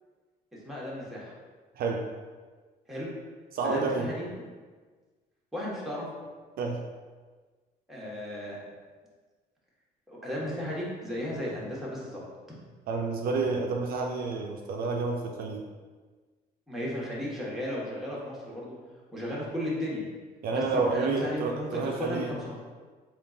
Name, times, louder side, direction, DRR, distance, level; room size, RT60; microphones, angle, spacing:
voice 1, 0.6-1.3 2.9-3.1 3.6-4.3 5.5-6.1 7.9-8.6 10.1-12.2 16.7-18.7 19.1-20.0 20.5-22.6, left 1 dB, ahead, -5 dB, 1.1 m, -34 dB
voice 2, 1.8-2.1 3.5-4.1 6.6-6.8 12.9-15.7 20.4-22.3, right 4 dB, 60° right, 1 dB, 0.4 m, -29 dB
3.7 x 2.4 x 3.7 m, 1.4 s
cardioid pair, 110°, 17 cm